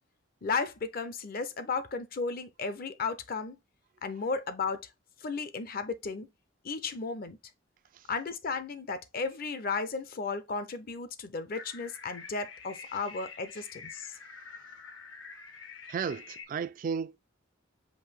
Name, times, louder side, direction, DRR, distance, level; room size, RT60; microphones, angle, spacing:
voice 1, 0.4-3.6 4.0-4.9 5.2-6.3 6.6-7.4 8.1-14.2, left 4 dB, 45° left, 0.6 m, -34 dB
sound 1, 11.5-16.4, left 5 dB, 70° left, 0.9 m, -47 dB
voice 2, 15.9-17.2, right 6 dB, 45° right, 0.3 m, -34 dB
5.3 x 2.6 x 3.4 m
head